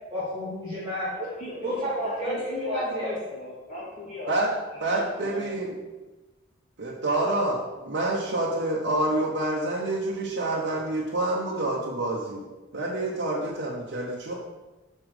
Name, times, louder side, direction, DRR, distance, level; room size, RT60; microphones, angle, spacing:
voice 1, 0.1-1.3 1.6-2.3 2.7-3.1, equal, 25° right, -10 dB, 1.8 m, -30 dB
voice 2, 1.4-4.3 4.7-5.7, left 1 dB, 35° left, -7 dB, 2.5 m, -36 dB
voice 3, 4.8-5.8 6.8-12.5 12.7-14.3, right 2 dB, 60° right, -4 dB, 0.9 m, -27 dB
6.3 x 5.5 x 4.9 m, 1.2 s
head